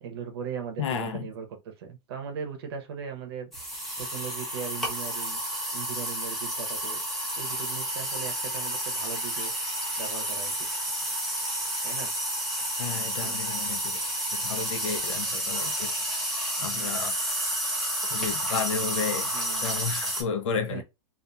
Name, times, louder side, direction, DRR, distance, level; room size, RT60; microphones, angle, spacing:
voice 1, 0.0-3.5 4.0-5.4 5.7-7.0 7.4-9.5 10.0-10.7 11.8-12.1 13.2-13.6 16.6-17.0 19.3-19.7 20.7-20.8, right 7 dB, 55° right, 0.7 m, -38 dB
voice 2, 0.8-1.2 12.8-14.0 14.3-17.2 18.1-19.3 19.6-20.8, left 6 dB, 85° left, 0.7 m, -32 dB
sound 1, 3.5-20.2, right 1 dB, ahead, 0.6 m, -30 dB
2.6 x 2.4 x 2.2 m
supercardioid pair, 170°, 16 cm